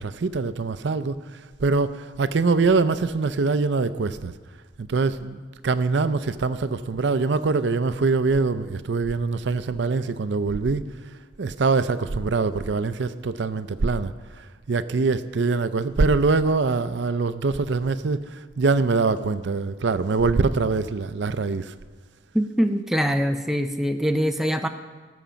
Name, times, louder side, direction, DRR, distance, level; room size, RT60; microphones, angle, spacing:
voice 1, 0.0-4.3 4.8-10.8 11.4-21.7, right 4 dB, 70° right, 13 dB, 0.5 m, -24 dB
voice 2, 22.3-24.7, equal, ahead, 5 dB, 0.5 m, -23 dB
18.5 x 7.1 x 5.1 m, 1.4 s
head